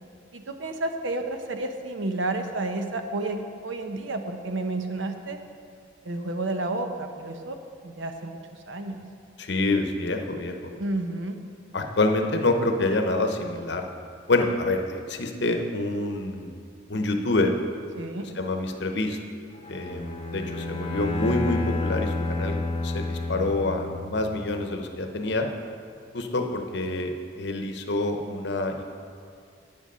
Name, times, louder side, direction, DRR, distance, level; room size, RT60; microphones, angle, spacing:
voice 1, 0.3-5.4 6.0-7.6 7.8-8.4 8.7-9.0 10.8-11.4 18.0-18.3, right 2 dB, 75° right, 6 dB, 0.8 m, -31 dB
voice 2, 9.4-10.7 11.7-13.9 14.3-16.5 16.9-17.5 18.4-19.2 19.7-25.5 26.1-28.8, left 2 dB, 60° left, 5 dB, 0.8 m, -27 dB
Bowed string instrument, 19.7-24.5, left 2 dB, 30° left, 0.8 m, -30 dB
9.1 x 7.7 x 5.5 m, 2.3 s
head